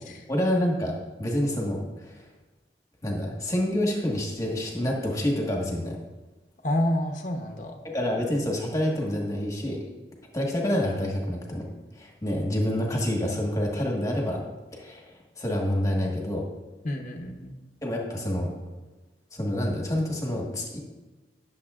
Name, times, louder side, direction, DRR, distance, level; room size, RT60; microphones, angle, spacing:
voice 1, 0.3-0.9 1.2-2.2 3.0-6.0 7.8-9.8 10.3-11.7 12.0-14.4 14.7-16.4 17.8-18.5 19.3-20.8, left 1 dB, 20° left, -1 dB, 1.5 m, -27 dB
voice 2, 6.6-7.8 16.8-17.5, left 1 dB, 45° left, 3 dB, 0.9 m, -29 dB
20.0 x 7.3 x 2.5 m, 1.2 s
head